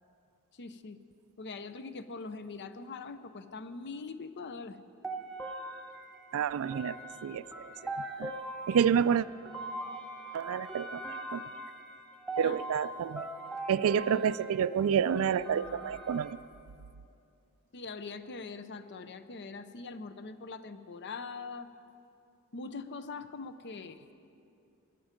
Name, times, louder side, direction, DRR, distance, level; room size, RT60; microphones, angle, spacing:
voice 1, 0.5-1.0 1.4-4.8 12.4-12.6 17.7-21.7 22.5-24.0, left 4 dB, 50° left, 11 dB, 0.6 m, -42 dB
sound 1, 5.0-16.3, right 2 dB, ahead, 1.3 m, -41 dB
voice 2, 6.3-7.0 7.2-7.9 8.2-8.3 8.7-9.3 10.3-11.0 11.3-11.4 12.4-13.3 13.7-16.4, right 7 dB, 65° right, 17 dB, 0.3 m, -29 dB
20.0 x 11.0 x 5.1 m, 2.6 s
head